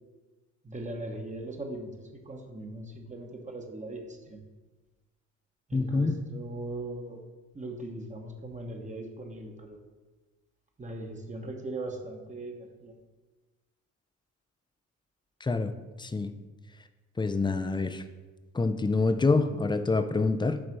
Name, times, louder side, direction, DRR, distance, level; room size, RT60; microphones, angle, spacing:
voice 1, 0.6-4.4 5.7-7.3 7.5-9.8 10.8-12.9, right 2 dB, 25° right, 2 dB, 1.1 m, -39 dB
voice 2, 5.7-6.1 15.4-15.7 16.0-16.3 17.2-18.0 18.5-20.6, left 3 dB, 15° left, 10 dB, 0.5 m, -26 dB
6.2 x 4.1 x 6.1 m, 1.2 s
cardioid pair, 90°, 30 cm